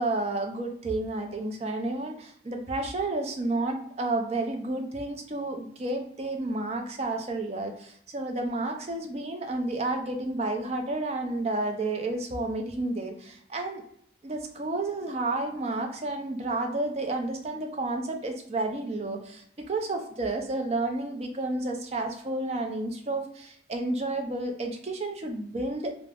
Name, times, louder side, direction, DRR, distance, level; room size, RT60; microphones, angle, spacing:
voice 1, 0.0-13.8 14.2-25.9, right 2 dB, 35° right, 4 dB, 0.4 m, -31 dB
2.3 x 2.0 x 3.3 m, 0.69 s
head